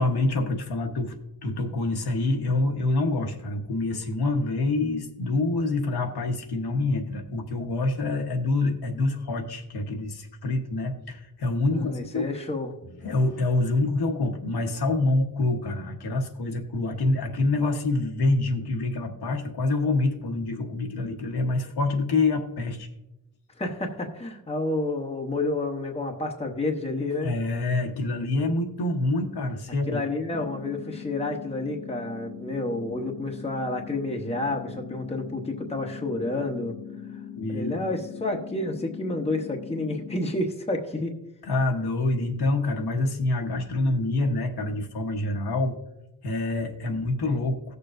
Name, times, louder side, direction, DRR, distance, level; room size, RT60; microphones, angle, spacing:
voice 1, 0.0-12.3 13.0-22.9 27.2-30.0 37.3-37.7 41.4-45.8 46.2-47.7, left 2 dB, 80° left, 3 dB, 1.2 m, -26 dB
voice 2, 11.7-12.8 23.6-27.3 29.9-36.8 37.5-41.2, left 2 dB, 15° left, 2 dB, 1.0 m, -30 dB
sound 1, 30.3-40.3, left 9 dB, 45° left, 0.6 m, -40 dB
17.5 x 6.7 x 2.6 m, 0.89 s
wide cardioid pair, 165°, 38 cm